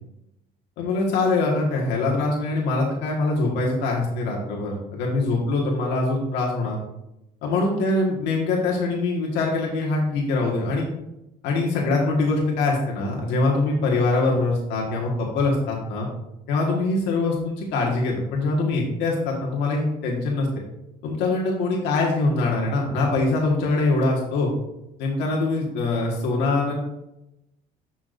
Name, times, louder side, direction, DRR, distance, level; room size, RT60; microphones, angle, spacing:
voice 1, 0.8-6.8 7.4-10.8 11.4-16.1 16.5-20.5 21.0-24.5 25.0-26.7, left 3 dB, 90° left, -2 dB, 1.7 m, -23 dB
10.5 x 6.1 x 2.6 m, 0.89 s
cardioid pair, 110°, 17 cm